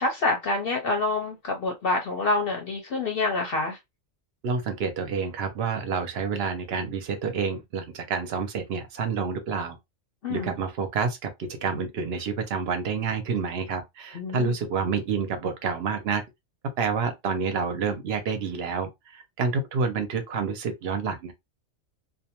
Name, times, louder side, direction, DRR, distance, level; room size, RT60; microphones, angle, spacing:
voice 1, 0.0-3.8 10.2-10.5 14.1-14.5, left 3 dB, 55° left, 0.7 m, -27 dB
voice 2, 4.4-9.8 10.3-16.2 16.8-21.3, right 5 dB, 60° right, 0.8 m, -28 dB
2.4 x 2.2 x 2.8 m
omnidirectional pair, 1.3 m